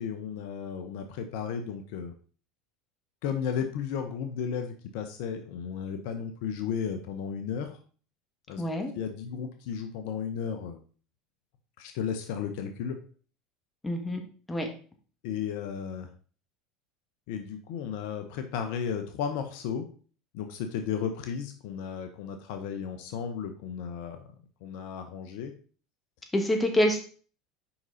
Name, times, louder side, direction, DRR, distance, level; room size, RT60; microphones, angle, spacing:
voice 1, 0.0-2.1 3.2-7.8 8.5-8.6 8.9-10.8 11.8-13.0 15.2-16.1 17.3-19.9 20.3-24.3 24.6-25.6, left 7 dB, 65° left, 7 dB, 0.8 m, -34 dB
voice 2, 8.6-8.9 13.8-14.2 14.5-14.7 26.3-27.0, left 1 dB, 15° left, 3 dB, 1.7 m, -26 dB
5.8 x 5.4 x 4.0 m, 0.41 s
hypercardioid pair, 80°, 0 cm